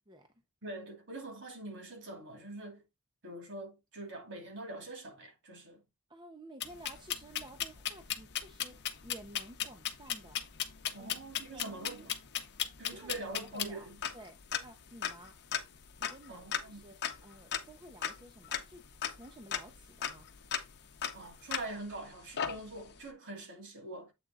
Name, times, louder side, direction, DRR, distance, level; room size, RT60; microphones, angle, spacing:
voice 1, 0.6-2.8 3.2-5.8 10.9-12.2 12.8-14.0 16.3-16.9 21.1-24.1, right 2 dB, 55° right, 2.4 m, -44 dB
voice 2, 6.1-10.4 11.0-11.1 11.4-12.1 12.9-13.9 14.1-15.3 16.0-17.0 17.2-18.8 19.1-20.3, right 1 dB, 20° right, 0.7 m, -53 dB
sound 1, 6.6-22.0 22.4-23.0, left 9 dB, 50° left, 0.8 m, -38 dB
7.8 x 3.6 x 3.9 m
head